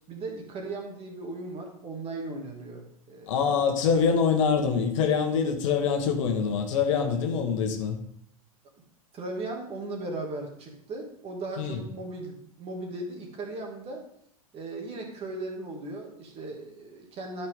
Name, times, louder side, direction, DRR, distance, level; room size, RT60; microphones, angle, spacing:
voice 1, 0.1-3.3 9.1-14.1 14.5-17.5, right 2 dB, 30° right, 1 dB, 2.3 m, -37 dB
voice 2, 3.3-8.0 11.5-11.8, left 6 dB, 55° left, 4 dB, 1.4 m, -25 dB
12.0 x 5.8 x 3.7 m, 0.70 s
figure-of-eight pair, 85°, 19 cm